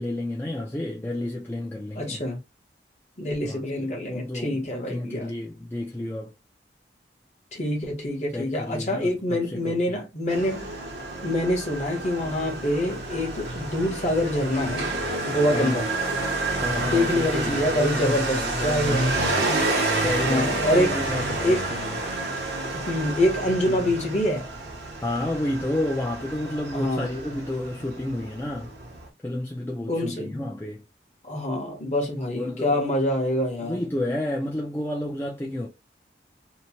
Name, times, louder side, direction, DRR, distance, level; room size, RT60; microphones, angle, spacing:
voice 1, 0.0-2.2 3.4-6.3 8.3-10.0 15.5-15.9 16.6-19.0 20.0-21.9 25.0-28.8 29.2-30.8 32.3-32.8 33.6-35.7, left 1 dB, 10° left, 0.4 m, -31 dB
voice 2, 2.0-2.4 3.2-5.3 7.5-10.7 11.2-14.9 15.3-15.9 16.8-19.3 20.2-21.0 21.4-21.7 22.7-24.5 26.7-27.1 29.9-30.5 31.2-33.8, left 1 dB, 40° left, 1.0 m, -25 dB
Motorcycle, 10.3-29.1, right 2 dB, 75° right, 0.8 m, -29 dB
2.9 x 2.1 x 2.8 m
head